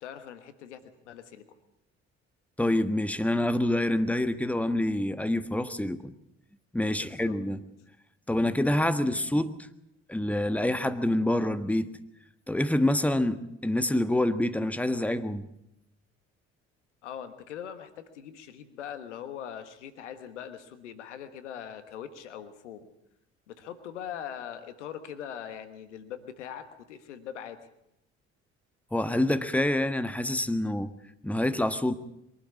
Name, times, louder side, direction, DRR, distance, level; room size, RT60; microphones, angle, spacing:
voice 1, 0.0-1.4 7.0-7.3 17.0-22.9 23.5-27.6, left 9 dB, 80° left, 10 dB, 1.4 m, -41 dB
voice 2, 2.6-6.1 6.7-7.6 8.3-9.5 10.1-11.9 12.5-15.5 28.9-30.9 31.2-31.9, left 1 dB, 5° left, 10 dB, 1.4 m, -26 dB
23.0 x 12.0 x 9.6 m, 0.83 s
figure-of-eight pair, 50°, 35 cm